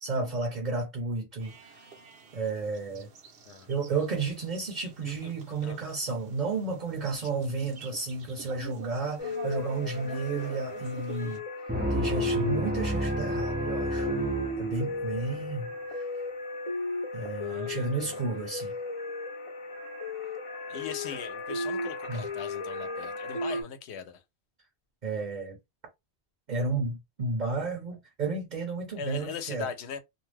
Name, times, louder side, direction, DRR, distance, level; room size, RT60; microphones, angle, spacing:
voice 1, 0.0-1.8 2.3-3.1 3.7-11.4 11.9-14.1 14.6-15.7 17.1-18.7 22.1-22.3 25.0-25.6 26.5-29.7, right 3 dB, 45° right, 0.8 m, -32 dB
sound 1, 1.4-11.4, right 5 dB, 70° right, 1.0 m, -48 dB
voice 2, 5.0-5.3 5.6-5.9 17.3-18.2 20.7-24.2 29.0-30.0, left 7 dB, 85° left, 0.9 m, -40 dB
sound 2, 9.2-23.6, left 1 dB, 35° left, 0.6 m, -35 dB
sound 3, 11.7-15.3, equal, 15° right, 0.4 m, -30 dB
2.5 x 2.2 x 3.2 m
omnidirectional pair, 1.1 m